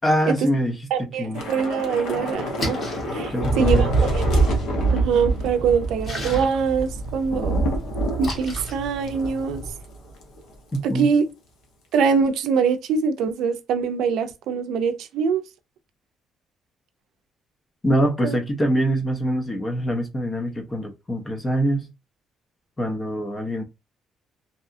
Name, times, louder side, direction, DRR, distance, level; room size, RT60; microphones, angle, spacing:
voice 1, 0.0-1.4 3.3-3.9 10.7-11.1 17.8-21.9 22.8-23.6, equal, 20° left, 0.5 m, -24 dB
voice 2, 0.9-2.8 3.1-4.2 4.9-7.6 8.2-9.6 10.8-11.2 11.9-15.4 18.2-18.4, right 6 dB, 80° right, 0.4 m, -23 dB
Thunder / Rain, 1.3-9.9 10.2-10.4 10.7-11.0, right 2 dB, 85° left, 0.7 m, -25 dB
Splash splatter, 2.3-9.7, left 1 dB, 40° left, 1.0 m, -37 dB
2.7 x 2.3 x 2.5 m
cardioid pair, 145°, 0 cm